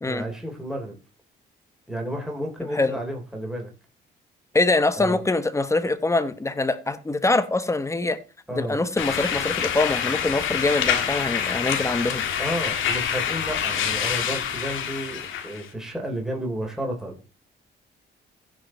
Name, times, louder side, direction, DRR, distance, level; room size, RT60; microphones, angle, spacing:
voice 1, 0.0-0.9 1.9-3.7 5.0-5.2 8.5-8.8 12.4-17.2, right 1 dB, ahead, 3.4 m, -32 dB
voice 2, 4.5-8.2 8.5-12.2, left 2 dB, 15° left, 1.1 m, -24 dB
sound 1, 9.0-15.6, left 8 dB, 80° left, 1.7 m, -26 dB
15.5 x 5.3 x 4.4 m
cardioid pair, 90°, 20 cm